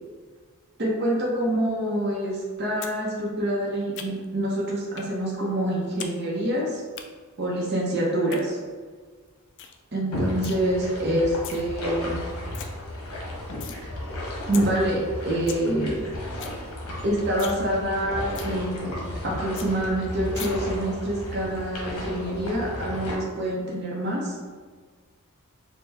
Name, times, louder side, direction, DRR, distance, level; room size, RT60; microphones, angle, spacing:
voice 1, 0.8-6.8 7.4-8.6 9.9-12.2 14.5-16.0 17.0-24.4, right 1 dB, 50° right, -4 dB, 0.7 m, -26 dB
sound 1, 2.8-3.0 3.3-4.4 5.0-5.1 5.4-6.1 6.4-7.0 8.1-8.4 8.9-9.0 9.3-9.4 9.6-9.8 10.1-10.6 11.2-11.6 12.0-12.1 12.3-12.7 13.1-13.8 14.2-14.3 14.5-14.6 15.0-15.1 15.3-15.6 16.0-16.1 16.3-16.6 16.9-17.0 17.3-17.6 17.9-18.0 18.4-18.5 18.9-19.0 19.2-19.3 19.6-19.7 20.4-20.5, left 9 dB, 55° left, 0.3 m, -38 dB
sound 2, 10.1-23.2, left 1 dB, 80° left, 0.9 m, -33 dB
4.4 x 2.2 x 3.3 m, 1.5 s
head